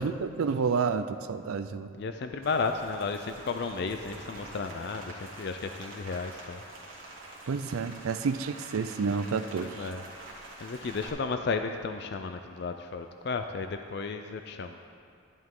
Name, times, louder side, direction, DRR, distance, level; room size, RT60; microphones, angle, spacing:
voice 1, 0.0-1.9 7.5-9.9, right 5 dB, 85° right, 10 dB, 0.4 m, -30 dB
voice 2, 2.0-6.6 9.6-10.0 10.6-14.9, left 4 dB, 50° left, 7 dB, 0.4 m, -33 dB
Rain, 2.4-11.1, right 2 dB, 70° right, 2.0 m, -46 dB
10.5 x 10.5 x 3.7 m, 2.4 s
head